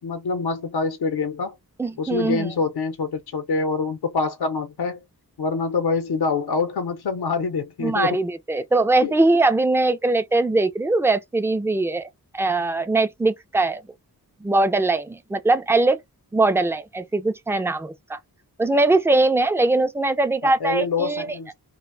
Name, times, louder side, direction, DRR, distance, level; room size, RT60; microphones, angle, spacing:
voice 1, 0.0-1.5 2.0-5.0 5.4-8.2 9.0-9.1 20.4-21.5, left 4 dB, 75° left, 0.7 m, -25 dB
voice 2, 1.8-2.5 7.8-12.1 12.3-13.8 14.4-16.0 16.3-18.2 18.6-21.4, right 2 dB, 5° right, 0.4 m, -21 dB
2.5 x 2.2 x 3.2 m
wide cardioid pair, 65°, 38 cm